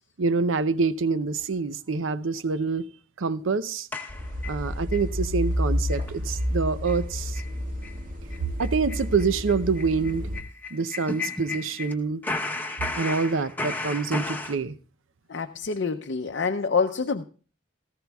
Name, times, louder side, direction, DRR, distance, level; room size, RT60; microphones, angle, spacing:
voice 1, 0.2-2.9 3.2-3.9 4.4-7.4 8.6-10.3 10.7-12.2 12.9-14.8, right 4 dB, 85° right, 0.6 m, -26 dB
sound 1, 3.9-5.0 5.4-5.5 5.9-6.1 6.4-6.5 6.8-7.0 7.3-7.5 7.8-8.0 8.3-11.9 12.2-14.5, left 2 dB, 10° left, 0.9 m, -34 dB
sound 2, 4.1-10.4, equal, 45° right, 1.9 m, -30 dB
voice 2, 15.3-17.2, left 5 dB, 60° left, 0.6 m, -26 dB
18.0 x 14.5 x 2.3 m
head